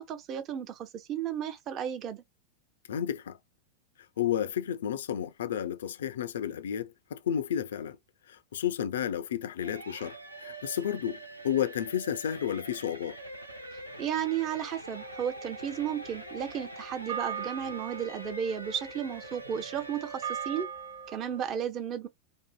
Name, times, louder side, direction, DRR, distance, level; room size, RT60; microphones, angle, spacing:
voice 1, 0.0-2.2 13.7-20.7 21.1-22.1, right 9 dB, 35° right, 0.5 m, -34 dB
voice 2, 2.9-3.4 4.2-8.0 8.3-13.2, left 9 dB, 60° left, 0.3 m, -32 dB
sound 1, 9.6-20.6, right 1 dB, 85° right, 0.6 m, -44 dB
sound 2, 14.9-21.5, right 7 dB, 65° right, 1.0 m, -41 dB
2.7 x 2.5 x 2.2 m
figure-of-eight pair, 90°, 0 cm